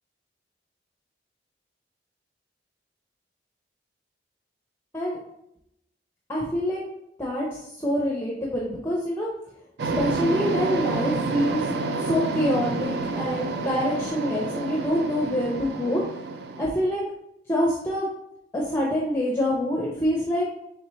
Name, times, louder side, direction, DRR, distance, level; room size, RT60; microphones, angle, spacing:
voice 1, 6.3-6.8 7.2-9.3 10.0-11.6 12.0-16.0 16.6-17.0 17.5-18.1 18.5-20.4, equal, 15° left, -4 dB, 0.6 m, -26 dB
sound 1, 9.8-16.7, right 3 dB, 65° right, 0.4 m, -29 dB
4.2 x 3.3 x 3.1 m, 0.78 s
head